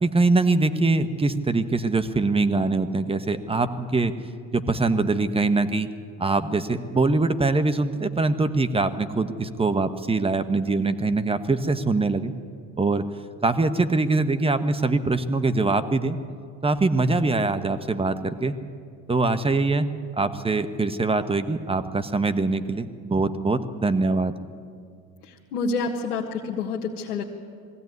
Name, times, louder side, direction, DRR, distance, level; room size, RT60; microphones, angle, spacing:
voice 1, 0.0-4.1 4.5-5.9 6.2-12.3 12.8-13.0 13.4-16.2 16.6-18.6 19.1-19.9 20.2-24.3, right 3 dB, 15° right, 11 dB, 1.1 m, -23 dB
voice 2, 25.3-27.2, left 4 dB, 90° left, -1 dB, 1.5 m, -28 dB
20.5 x 15.5 x 9.5 m, 2.3 s
hypercardioid pair, 85°, 44 cm